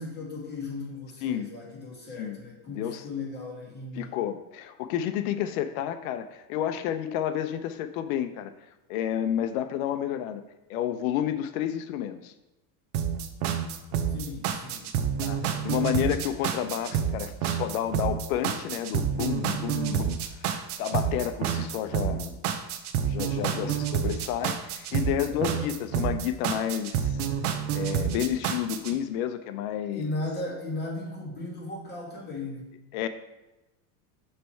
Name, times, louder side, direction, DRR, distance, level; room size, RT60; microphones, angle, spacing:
voice 1, 0.0-4.1 14.1-14.9 15.4-15.9 23.5-23.9 25.3-25.7 29.9-32.7, left 2 dB, 25° left, -3 dB, 2.2 m, -37 dB
voice 2, 2.7-3.0 4.0-8.5 8.9-10.4 10.7-12.3 15.2-20.2 20.8-22.4 23.0-27.2 27.7-30.2 32.9-33.1, left 10 dB, 75° left, 10 dB, 0.6 m, -30 dB
sound 1, 12.9-28.9, right 8 dB, 90° right, 0.7 m, -28 dB
6.7 x 3.2 x 4.4 m, 0.98 s
supercardioid pair, 105°, 43 cm